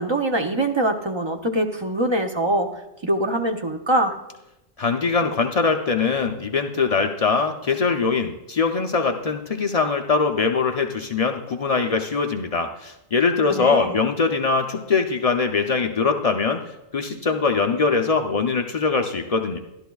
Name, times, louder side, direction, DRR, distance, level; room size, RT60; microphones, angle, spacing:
voice 1, 0.0-2.7 3.0-4.1 13.5-14.0, right 1 dB, 30° right, 4 dB, 0.5 m, -23 dB
voice 2, 4.8-16.6 16.9-19.6, left 4 dB, 55° left, 4 dB, 0.4 m, -22 dB
13.5 x 11.5 x 2.3 m, 0.91 s
omnidirectional pair, 1.3 m